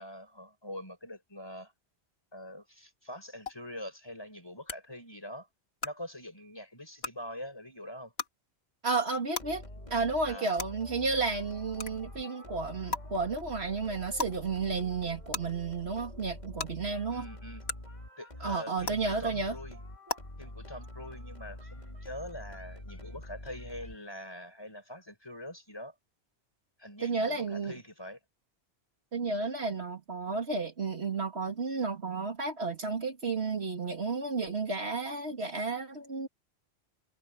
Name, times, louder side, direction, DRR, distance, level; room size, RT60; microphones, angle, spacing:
voice 1, 0.0-1.7 2.3-5.5 5.8-8.1 10.3-10.5 17.1-17.6 18.2-19.8 20.4-25.9 26.8-28.2, left 1 dB, 25° left, 4.9 m, -44 dB
sound 1, 3.5-3.6 4.7-4.8 5.8-5.9 7.0-7.1 8.2-8.3 9.3-9.4 10.6-10.7 11.8-11.9 12.9-13.0 14.2-14.3 15.3-15.4 16.6-16.7 17.7-17.8 18.8-18.9 20.1-20.2, left 3 dB, 70° left, 2.2 m, -33 dB
voice 2, 8.8-9.6 9.9-17.3 18.4-19.6 27.0-27.8 29.1-36.3, right 4 dB, 75° right, 2.6 m, -32 dB
sound 2, 9.4-24.3, left 1 dB, 40° left, 3.6 m, -46 dB
omnidirectional pair, 1.1 m